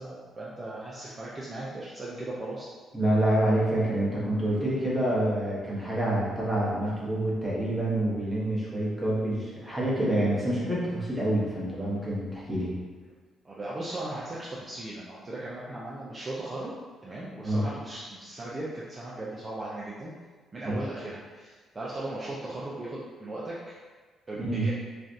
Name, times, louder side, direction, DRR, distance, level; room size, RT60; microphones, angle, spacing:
voice 1, 0.0-2.7 13.4-16.7 17.0-20.1 20.5-23.6 24.3-24.7, right 2 dB, 25° right, -6 dB, 0.5 m, -37 dB
voice 2, 2.9-12.7 17.4-17.7 20.7-20.8 24.4-24.7, right 1 dB, 5° right, -7 dB, 1.0 m, -27 dB
3.2 x 2.4 x 2.6 m, 1.4 s
cardioid pair, 90°, 0 cm